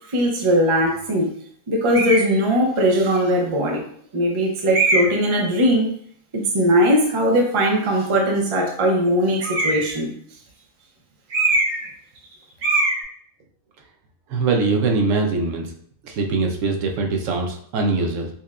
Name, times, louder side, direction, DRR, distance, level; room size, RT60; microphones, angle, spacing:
voice 1, 0.1-1.3 1.7-3.8 4.1-5.9 6.3-10.1, equal, 35° right, 0 dB, 0.5 m, -19 dB
sound 1, 1.9-2.3 3.1-3.2 4.7-5.3 9.4-10.0 11.3-11.9 12.2-12.3 12.6-13.0, right 2 dB, 90° right, 1.3 m, -21 dB
voice 2, 14.3-15.7 16.0-18.3, right 3 dB, 70° right, 3 dB, 0.9 m, -22 dB
5.5 x 2.2 x 2.4 m, 0.62 s
omnidirectional pair, 1.5 m